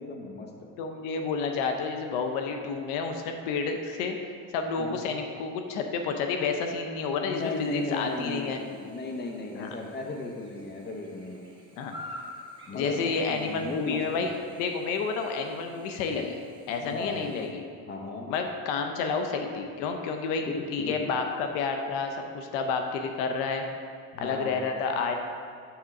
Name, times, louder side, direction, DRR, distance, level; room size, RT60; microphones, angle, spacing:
voice 1, 0.0-0.7 4.8-5.0 7.2-11.5 12.7-14.3 16.8-17.3 17.9-18.3 20.5-21.1 24.1-24.6, left 2 dB, 30° left, 2 dB, 0.9 m, -35 dB
voice 2, 0.8-4.2 4.5-8.6 9.6-9.7 11.8-12.0 12.7-14.3 14.6-16.4 16.7-17.6 18.3-23.6 24.2-25.2, left 5 dB, 80° left, 4 dB, 0.7 m, -30 dB
Chirp tweet / Buzz, 7.4-17.5, left 1 dB, 15° right, 1.4 m, -50 dB
7.0 x 3.7 x 5.8 m, 2.3 s
supercardioid pair, 115°, 37 cm